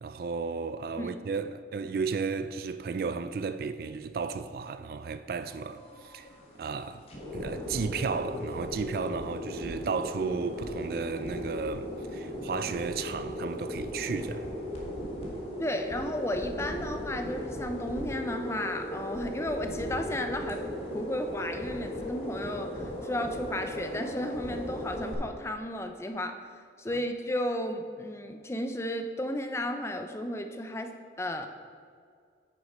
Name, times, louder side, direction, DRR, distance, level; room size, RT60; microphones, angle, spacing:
voice 1, 0.0-6.3 6.6-7.0 7.3-14.4 26.9-27.0, right 5 dB, 50° right, 0.3 m, -34 dB
sound 1, 5.5-25.1, left 1 dB, 30° left, 1.6 m, -37 dB
voice 2, 15.6-20.6 20.9-26.4 26.8-30.9 31.2-31.5, left 1 dB, 15° left, 0.4 m, -33 dB
9.8 x 6.4 x 4.2 m
head